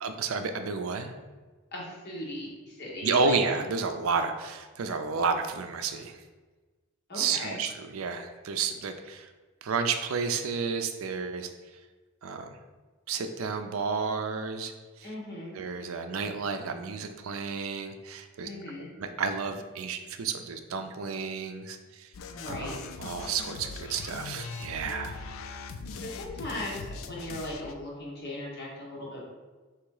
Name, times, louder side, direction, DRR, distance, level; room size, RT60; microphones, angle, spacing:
voice 1, 0.0-1.1 3.0-6.2 7.1-9.3 9.6-11.5 12.2-12.5 13.1-14.7 15.0-15.1 15.5-18.5 19.0-22.1 22.5-25.2, right 5 dB, 75° right, 7 dB, 0.4 m, -31 dB
voice 2, 1.7-3.4 7.1-7.6 15.0-15.5 18.4-18.9 22.2-22.8 25.9-29.3, left 1 dB, 50° left, -4 dB, 1.3 m, -38 dB
sound 1, 22.1-27.7, left 4 dB, 70° left, 0.3 m, -40 dB
3.5 x 3.0 x 4.7 m, 1.3 s
head